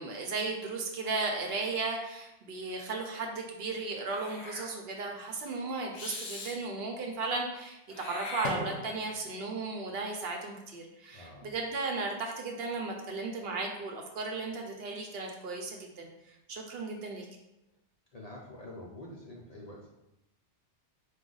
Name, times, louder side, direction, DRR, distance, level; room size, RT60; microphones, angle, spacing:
voice 1, 0.0-17.3, right 3 dB, 65° right, 1 dB, 0.8 m, -35 dB
Meow / Hiss, 4.1-4.7 5.9-6.6 7.9-9.1, left 2 dB, 80° left, 1.1 m, -39 dB
voice 2, 11.1-11.5 18.1-19.9, left 1 dB, 45° left, -3 dB, 0.6 m, -46 dB
4.8 x 2.2 x 3.8 m, 0.90 s
omnidirectional pair, 1.2 m